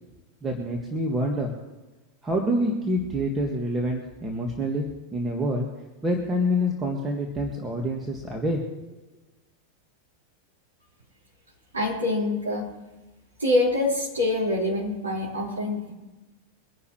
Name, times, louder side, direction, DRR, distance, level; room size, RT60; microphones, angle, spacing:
voice 1, 0.4-1.5 2.2-4.9 5.1-5.7 6.0-8.9, equal, 15° right, 0 dB, 2.0 m, -27 dB
voice 2, 11.7-12.7 13.4-15.9, left 2 dB, 75° right, -6 dB, 4.8 m, -25 dB
24.0 x 11.5 x 3.3 m, 1.1 s
figure-of-eight pair, 90°, 0 cm